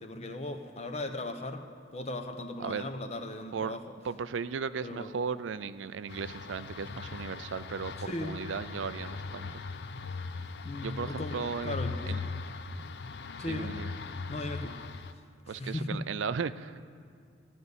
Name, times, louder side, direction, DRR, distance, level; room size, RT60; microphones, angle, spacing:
voice 1, 0.0-1.6 1.9-3.8 4.8-5.1 8.0-8.4 10.6-11.4 11.6-12.4 12.8-12.9 13.4-13.7 14.3-14.8 15.5-16.0, left 2 dB, 35° left, 6 dB, 0.9 m, -37 dB
voice 2, 2.6-2.9 3.5-3.8 4.0-7.9 8.2-9.6 10.8-11.8 12.1-12.2 13.5-13.9 15.5-16.8, right 6 dB, 90° right, 14 dB, 0.4 m, -36 dB
sound 1, 6.1-15.1, left 4 dB, 60° left, 0.5 m, -39 dB
15.5 x 5.4 x 9.7 m, 2.1 s
head